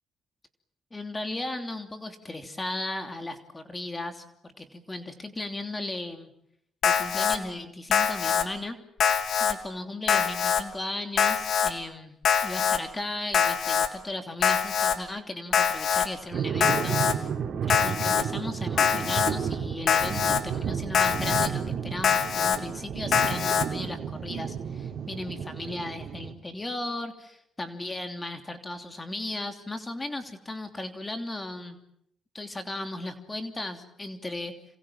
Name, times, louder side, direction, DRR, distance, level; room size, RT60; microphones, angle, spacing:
voice 1, 0.9-6.3 6.8-8.8 9.4-17.3 17.6-31.8 32.3-34.5, left 2 dB, 20° left, 6 dB, 3.0 m, -36 dB
Alarm, 6.8-7.4 7.9-8.4 9.0-9.5 10.1-10.6 11.2-11.7 12.2-12.8 13.3-13.9 14.4-15.0 15.5-16.1 16.6-17.1 17.7-18.2 18.8-19.3 19.9-20.4 20.9-21.5 22.0-22.6 23.1-23.6, left 7 dB, 65° left, 3.0 m, -23 dB
sound 1, 16.3-26.3, right 7 dB, 60° right, 3.5 m, -32 dB
27.5 x 27.0 x 7.4 m, 0.73 s
cardioid pair, 90°, 0 cm